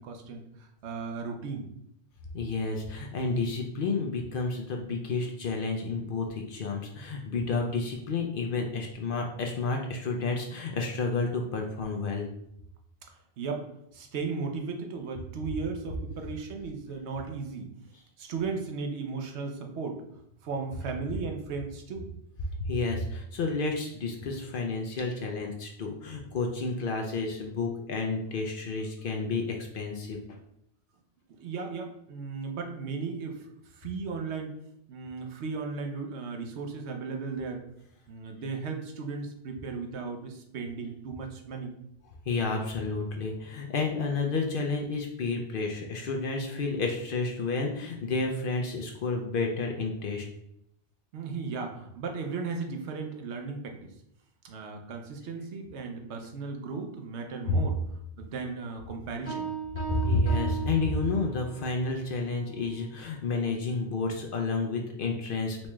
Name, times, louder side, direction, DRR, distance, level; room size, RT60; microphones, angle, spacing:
voice 1, 0.0-1.7 13.4-13.7 13.9-17.7 18.2-20.0 20.4-22.1 31.3-33.5 33.7-34.6 34.9-37.7 38.1-41.8 51.1-53.9 54.4-57.8 58.2-59.5, right 4 dB, 85° right, 3 dB, 0.9 m, -36 dB
voice 2, 2.3-12.3 22.6-30.4 42.3-50.3 57.5-57.6 59.8-65.7, left 3 dB, 60° left, 2 dB, 0.7 m, -30 dB
sound 1, 59.3-61.6, right 7 dB, 15° right, 0.8 m, -36 dB
4.1 x 2.3 x 3.0 m, 0.74 s
omnidirectional pair, 1.1 m